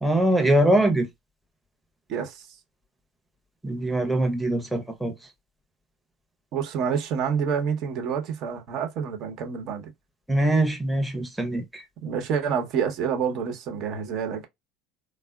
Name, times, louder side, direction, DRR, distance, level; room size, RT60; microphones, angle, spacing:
voice 1, 0.0-1.1 3.6-5.1 10.3-11.8, right 1 dB, ahead, 0.8 m, -22 dB
voice 2, 2.1-2.5 6.5-9.9 12.0-14.5, right 7 dB, 55° right, 1.0 m, -28 dB
3.5 x 2.1 x 2.4 m
hypercardioid pair, 70°, 0 cm